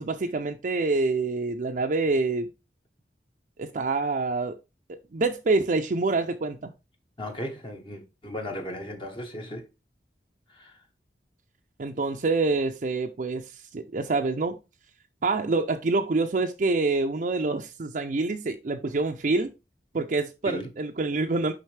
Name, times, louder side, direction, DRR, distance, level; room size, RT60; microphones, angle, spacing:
voice 1, 0.0-2.5 3.6-4.6 4.9-6.7 11.8-14.6 15.2-19.5 19.9-21.5, right 3 dB, 45° right, 0.5 m, -26 dB
voice 2, 7.2-9.6 10.5-10.7 20.4-20.7, left 1 dB, 30° left, 0.9 m, -36 dB
6.4 x 5.4 x 3.2 m
head